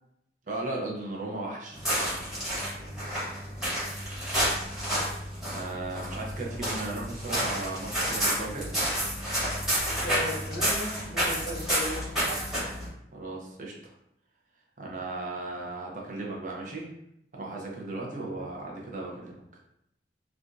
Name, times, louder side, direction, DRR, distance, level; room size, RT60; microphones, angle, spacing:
voice 1, 0.5-2.2 5.4-8.7 13.1-13.9 14.8-16.9 17.3-19.4, right 2 dB, 45° right, -2 dB, 0.7 m, -36 dB
sound 1, 1.7-12.9, equal, 5° right, 1.2 m, -30 dB
voice 2, 10.0-12.4 18.2-18.5, equal, 75° left, -3 dB, 0.7 m, -36 dB
3.3 x 2.4 x 2.6 m, 0.78 s
head